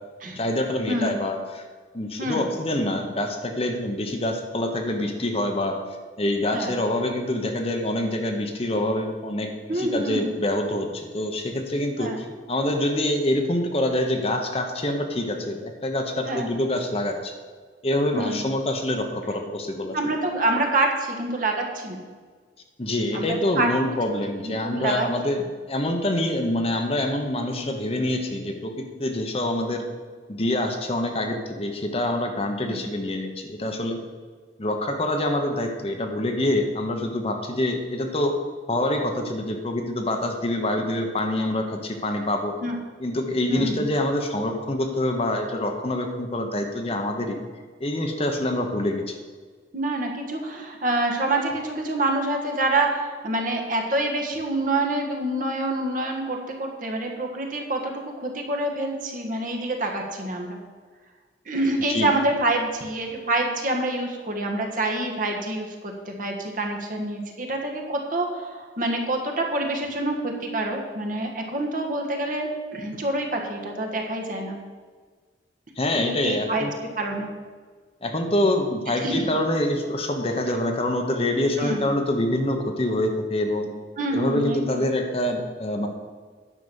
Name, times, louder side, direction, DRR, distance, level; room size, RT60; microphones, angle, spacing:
voice 1, 0.3-1.6 1.9-5.7 6.2-17.3 17.8-20.0 22.8-25.4 25.7-29.8 30.3-34.0 34.6-38.3 38.7-42.5 43.0-47.4 47.8-49.1 61.9-62.1 75.8-76.7 78.0-83.7 84.1-85.9, left 1 dB, 35° left, 4 dB, 1.0 m, -26 dB
voice 2, 0.9-1.2 2.2-2.5 6.5-6.7 9.7-10.3 12.0-12.2 16.2-16.5 18.1-18.5 19.9-22.0 23.1-23.7 24.4-25.1 32.6-32.8 42.6-42.7 43.5-43.9 49.7-60.6 61.4-74.6 75.9-76.7 77.0-77.3 79.0-79.3 81.4-81.8 84.0-84.8, right 2 dB, 50° right, 1 dB, 1.5 m, -27 dB
9.9 x 6.0 x 7.1 m, 1.5 s
head